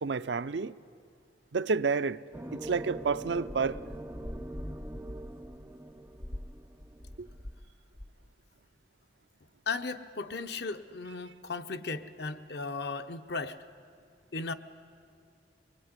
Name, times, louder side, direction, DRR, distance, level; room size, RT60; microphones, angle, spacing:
voice 1, 0.0-0.7 1.5-2.2 2.5-3.8, right 4 dB, 75° right, 0.5 m, -29 dB
sound 1, 2.3-7.6, right 1 dB, 15° right, 0.5 m, -44 dB
sound 2, 3.3-7.7 7.9-8.3, left 1 dB, 25° left, 0.7 m, -44 dB
voice 2, 9.7-13.6 14.3-14.5, left 4 dB, 65° left, 0.9 m, -36 dB
24.0 x 20.5 x 9.7 m
head